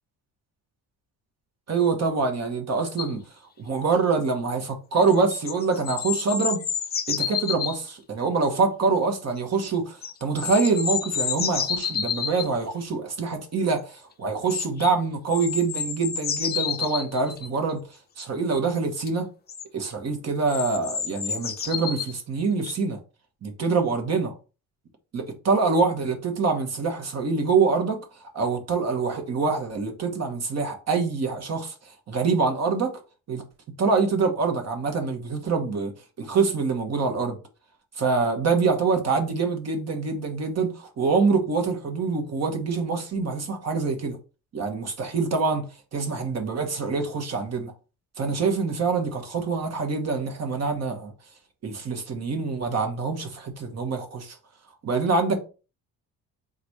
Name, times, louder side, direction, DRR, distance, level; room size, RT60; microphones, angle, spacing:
voice 1, 1.7-3.2 3.6-6.6 7.1-17.8 18.2-19.3 19.7-23.0 23.4-24.3 25.1-28.0 28.3-33.0 33.3-33.4 33.8-35.9 36.2-37.4 38.0-44.2 44.5-47.7 48.2-51.1 51.6-54.4 54.8-55.4, right 4 dB, 45° right, 1.2 m, -25 dB
sound 1, 3.0-3.1 5.0-7.8 10.0-12.5 14.5-14.9 15.3-17.5 19.1-19.2 19.5-19.6 20.5-22.1 22.6-22.7, left 7 dB, 25° left, 0.5 m, -29 dB
3.9 x 2.5 x 4.5 m
cardioid pair, 115°, 37 cm